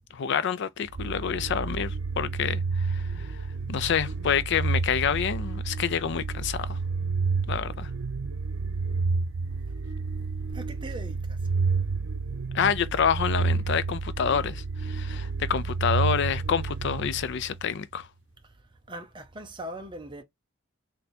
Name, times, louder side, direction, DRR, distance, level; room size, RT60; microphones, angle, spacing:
voice 1, 0.1-6.8 7.5-7.9 12.5-18.1, left 7 dB, 60° left, 0.4 m, -28 dB
sound 1, 0.9-17.8, right 4 dB, 85° right, 0.6 m, -30 dB
voice 2, 10.5-11.5 18.9-20.2, right 1 dB, 25° right, 0.6 m, -40 dB
3.3 x 2.7 x 4.1 m
head